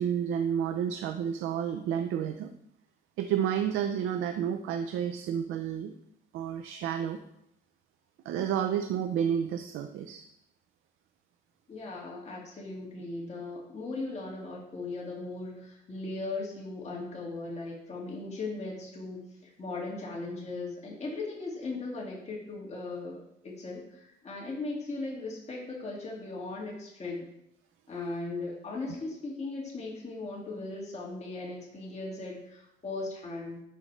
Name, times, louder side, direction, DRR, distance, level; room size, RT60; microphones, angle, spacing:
voice 1, 0.0-2.5 3.2-5.9 6.3-7.2 8.2-10.2, right 9 dB, 90° right, 7 dB, 0.6 m, -30 dB
voice 2, 11.7-27.3 27.9-33.6, left 3 dB, 35° left, -3 dB, 2.2 m, -38 dB
12.5 x 5.1 x 3.2 m, 0.78 s
cardioid pair, 90°, 20 cm